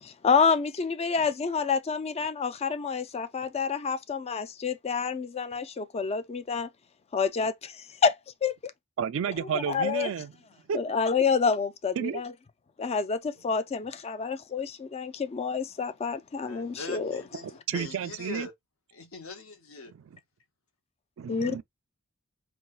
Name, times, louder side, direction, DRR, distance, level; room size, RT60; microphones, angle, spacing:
voice 1, 0.0-6.7 7.1-8.2 8.4-8.5 9.5-10.1 10.7-12.3 12.8-17.2 21.3-21.6, left 5 dB, 30° left, 0.4 m, -28 dB
voice 2, 9.0-10.3 10.7-10.8 12.0-12.2 17.7-18.5 19.9-20.2 21.2-21.6, right 7 dB, 70° right, 0.4 m, -31 dB
voice 3, 16.4-18.5 18.9-19.9, left 3 dB, 80° left, 0.8 m, -41 dB
4.2 x 2.1 x 2.4 m
head